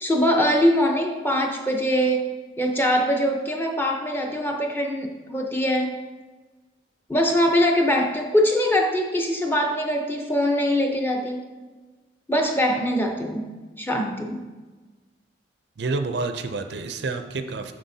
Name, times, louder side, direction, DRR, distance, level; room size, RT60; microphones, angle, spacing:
voice 1, 0.0-2.3 2.6-5.9 7.1-11.4 12.3-14.5, equal, 10° left, 2 dB, 0.6 m, -22 dB
voice 2, 15.8-17.7, right 3 dB, 70° right, 8 dB, 0.5 m, -28 dB
7.6 x 6.3 x 2.7 m, 1.3 s
head